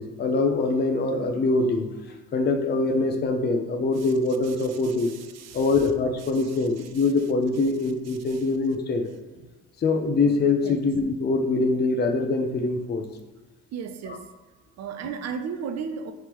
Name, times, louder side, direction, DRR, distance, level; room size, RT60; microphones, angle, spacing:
voice 1, 0.0-1.9 2.3-5.2 5.5-9.1 9.8-13.1 14.1-14.2 15.0-15.1, left 3 dB, 35° left, 4 dB, 0.5 m, -24 dB
voice 2, 4.4-5.7 6.5-6.6 8.3-8.4 10.6-10.8 13.7-14.3 14.8-16.1, right 6 dB, 60° right, 9 dB, 0.5 m, -35 dB
4.5 x 3.5 x 3.0 m, 1.3 s
cardioid pair, 90°, 30 cm